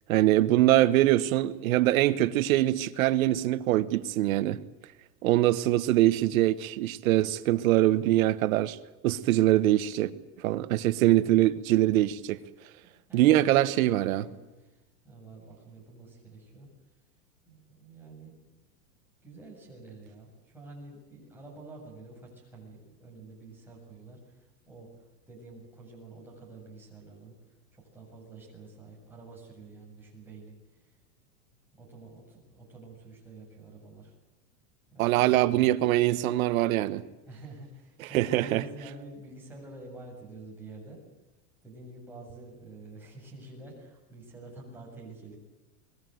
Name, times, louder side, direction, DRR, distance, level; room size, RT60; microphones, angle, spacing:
voice 1, 0.1-4.6 5.2-8.8 9.0-10.1 10.4-12.4 13.1-14.2 35.0-37.0 38.0-38.6, right 15 dB, 55° right, 1.3 m, -23 dB
voice 2, 13.1-16.7 17.5-18.3 19.2-24.9 25.3-27.4 27.7-30.5 30.8-30.9 31.7-34.1 34.9-35.2 37.3-41.0 41.6-45.4, right 2 dB, 5° right, 7.4 m, -48 dB
25.5 x 20.5 x 7.9 m
supercardioid pair, 160°, 48 cm